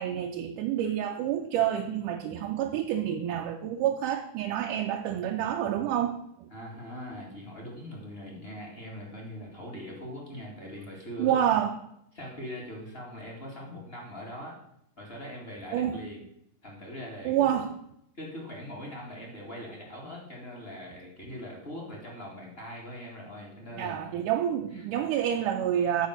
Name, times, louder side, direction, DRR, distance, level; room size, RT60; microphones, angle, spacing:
voice 1, 0.0-6.5 11.2-11.8 15.7-16.0 17.3-17.7 23.7-26.1, right 10 dB, 80° right, 3 dB, 2.0 m, -28 dB
voice 2, 6.5-11.3 12.1-14.5 15.0-16.2 16.6-17.6 18.1-24.2 24.7-24.8, equal, 20° left, -2 dB, 1.7 m, -41 dB
9.4 x 5.1 x 6.4 m, 0.75 s
omnidirectional pair, 4.1 m